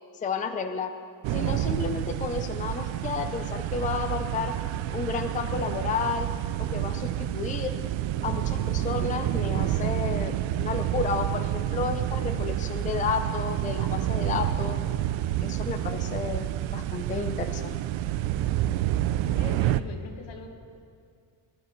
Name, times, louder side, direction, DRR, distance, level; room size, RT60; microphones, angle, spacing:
voice 1, 0.2-0.9 1.3-4.5 4.9-6.3 6.7-7.8 8.2-14.8 15.4-17.8, left 5 dB, 20° left, 6 dB, 0.5 m, -31 dB
sound 1, 1.2-19.8, right 13 dB, 85° right, 0.5 m, -29 dB
voice 2, 19.3-20.5, left 4 dB, 75° left, 3 dB, 1.7 m, -42 dB
20.0 x 12.5 x 3.1 m, 2.4 s
cardioid pair, 140°, 45 cm